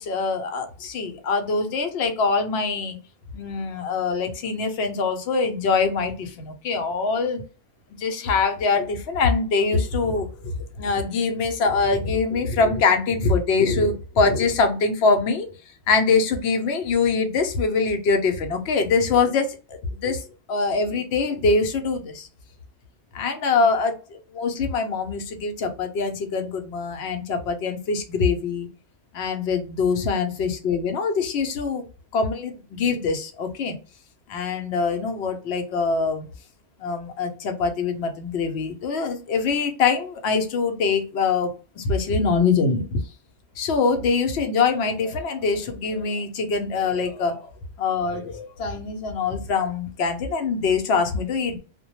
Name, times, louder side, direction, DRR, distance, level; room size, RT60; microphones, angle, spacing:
voice 1, 0.0-3.0 3.3-7.4 7.9-15.5 15.9-20.2 20.5-22.3 23.1-28.7 29.1-31.8 32.1-33.8 34.3-36.3 36.8-43.0 43.6-47.5 47.8-51.6, left 4 dB, 65° left, 5 dB, 0.8 m, -23 dB
2.1 x 2.1 x 2.9 m, 0.34 s
omnidirectional pair, 1.2 m